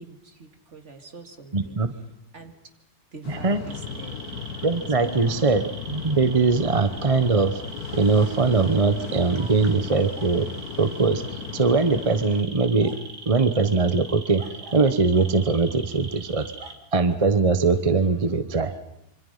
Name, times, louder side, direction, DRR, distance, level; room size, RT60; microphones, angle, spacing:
voice 1, 0.0-1.8 2.3-2.5 3.1-4.2 5.0-5.5 9.4-9.6, right 4 dB, 45° right, 5 dB, 2.5 m, -44 dB
voice 2, 1.5-1.9 3.3-3.6 4.6-7.6 7.9-10.5 10.8-13.0 13.3-14.4 14.7-16.5 16.9-18.7, right 4 dB, 25° right, 10 dB, 0.9 m, -21 dB
sound 1, 3.2-12.4, left 6 dB, 70° left, 1.9 m, -36 dB
sound 2, 3.7-16.8, right 3 dB, 80° right, 2.9 m, -41 dB
26.5 x 25.0 x 5.6 m, 0.82 s
omnidirectional pair, 1.7 m